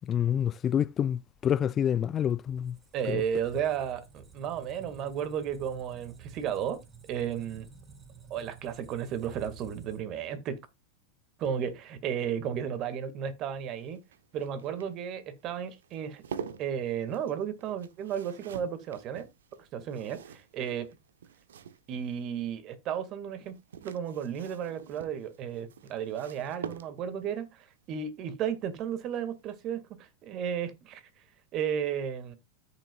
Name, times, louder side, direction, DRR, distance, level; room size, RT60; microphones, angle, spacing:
voice 1, 0.1-2.8 3.1-3.2, left 9 dB, 35° left, 0.4 m, -27 dB
Squeak, 2.4-10.3, right 7 dB, 25° right, 5.9 m, -51 dB
voice 2, 2.9-6.8 7.1-7.7 8.3-10.6 11.4-14.0 14.3-16.2 16.6-19.3 19.6-20.9 21.9-31.0 31.5-32.4, right 8 dB, 45° right, 2.0 m, -33 dB
sound 1, 13.4-22.3 23.4-27.3 28.9-29.2 29.5-29.6, right 7 dB, 80° right, 0.9 m, -46 dB
13.5 x 6.8 x 2.4 m
hypercardioid pair, 100°, 0 cm